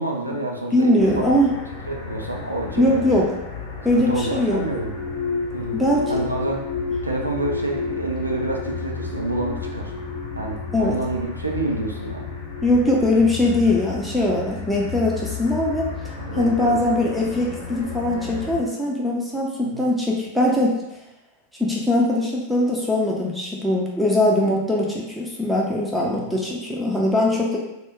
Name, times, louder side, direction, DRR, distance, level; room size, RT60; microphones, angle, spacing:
voice 1, 0.0-1.3 1.8-3.2 3.9-5.0 5.5-5.8 6.1-6.7 7.0-9.9 10.3-12.3 16.2-17.1 19.6-19.8 26.1-26.4, right 2 dB, 85° right, -1 dB, 0.4 m, -28 dB
voice 2, 0.7-1.5 2.8-3.3 3.8-4.6 5.7-6.1 10.7-11.0 12.6-15.9 16.3-20.8 21.6-27.6, left 1 dB, ahead, -4 dB, 0.4 m, -21 dB
sound 1, 1.0-18.6, left 4 dB, 60° left, 0.7 m, -32 dB
2.1 x 2.1 x 3.5 m, 0.90 s
figure-of-eight pair, 90°, 0 cm